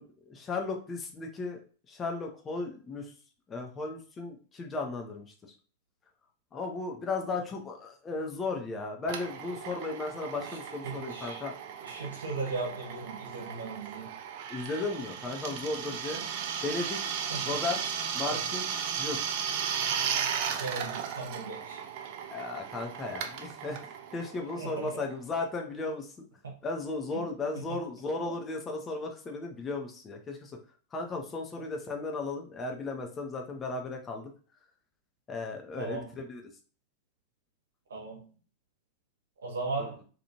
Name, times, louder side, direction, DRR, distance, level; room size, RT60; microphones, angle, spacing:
voice 1, 0.0-1.6 1.9-3.1 3.5-5.6 6.5-11.5 14.5-16.2 16.6-17.2 17.4-19.3 22.3-26.1 26.6-30.6 30.9-34.3 35.3-36.4, left 3 dB, 20° left, 0.5 m, -35 dB
Drill, 9.1-25.4, right 7 dB, 45° right, 0.4 m, -36 dB
voice 2, 10.8-11.4 11.8-14.2 16.1-16.2 17.3-17.5 18.2-18.4 20.6-21.8 24.6-25.0 26.4-26.5 28.2-28.3 35.8-36.1 37.9-38.3 39.4-40.0, right 3 dB, 70° right, 1.0 m, -37 dB
2.8 x 2.5 x 2.7 m
figure-of-eight pair, 90°, 0 cm